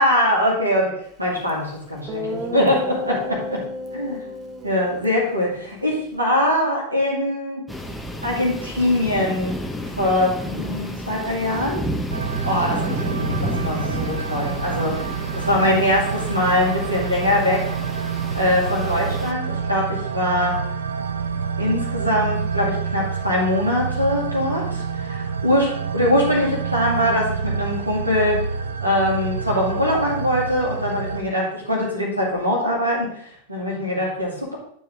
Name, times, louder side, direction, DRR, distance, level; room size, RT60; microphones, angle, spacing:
voice 1, 0.0-2.1 2.5-3.6 3.9-4.2 4.6-7.6 8.2-9.6 10.0-11.8 12.4-17.6 18.3-20.6 21.6-28.4 28.8-34.6, left 1 dB, 85° right, -4 dB, 2.9 m, -22 dB
Guitar, 1.5-1.6 2.1-6.2, left 1 dB, 25° right, 1.2 m, -32 dB
sound 1, 7.7-19.3, equal, ahead, 1.0 m, -31 dB
sound 2, 12.1-31.2, right 6 dB, 70° right, 0.5 m, -28 dB
11.5 x 4.6 x 3.9 m, 0.66 s
figure-of-eight pair, 90°, 0 cm